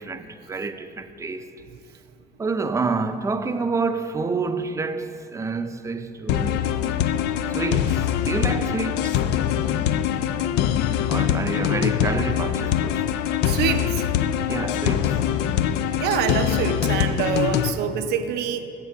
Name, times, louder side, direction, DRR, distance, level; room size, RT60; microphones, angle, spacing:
voice 1, 0.0-1.5 2.4-7.2 7.5-9.2 11.1-13.2 14.5-15.2, right 4 dB, 20° right, 0.4 m, -28 dB
sound 1, 6.3-17.7, left 10 dB, 85° left, 0.4 m, -23 dB
voice 2, 13.4-14.0 16.0-18.6, right 9 dB, 80° right, 0.6 m, -25 dB
9.4 x 6.9 x 4.7 m
cardioid pair, 110°, 17 cm